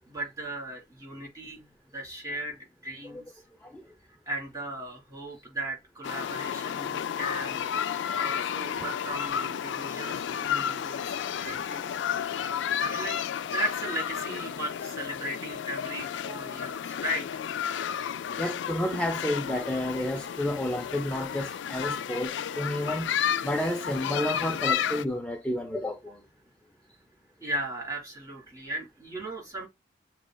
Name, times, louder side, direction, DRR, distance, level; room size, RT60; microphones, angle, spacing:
voice 1, 0.1-1.7 1.9-3.2 4.3-7.7 8.2-11.0 11.4-11.9 12.3-13.2 13.5-17.3 27.4-29.7, right 1 dB, 20° right, 2.8 m, -36 dB
sound 1, 6.0-25.0, left 8 dB, 75° left, 0.3 m, -32 dB
voice 2, 18.4-26.2, left 1 dB, 5° left, 0.5 m, -31 dB
7.3 x 3.0 x 2.2 m
head